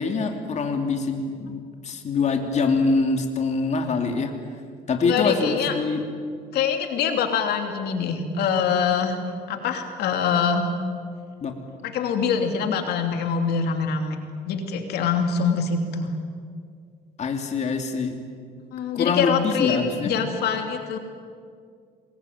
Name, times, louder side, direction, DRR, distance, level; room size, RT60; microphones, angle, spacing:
voice 1, 0.0-4.3 4.9-6.0 11.4-11.5 12.2-12.3 17.2-18.2 18.9-20.1, left 4 dB, 40° left, 4 dB, 2.8 m, -24 dB
voice 2, 5.0-5.8 6.5-9.2 9.5-10.7 11.8-14.2 14.4-16.1 18.7-19.8 20.0-21.0, left 6 dB, 70° left, 5 dB, 3.0 m, -24 dB
26.5 x 21.0 x 9.4 m, 2.2 s
cardioid pair, 110°, 17 cm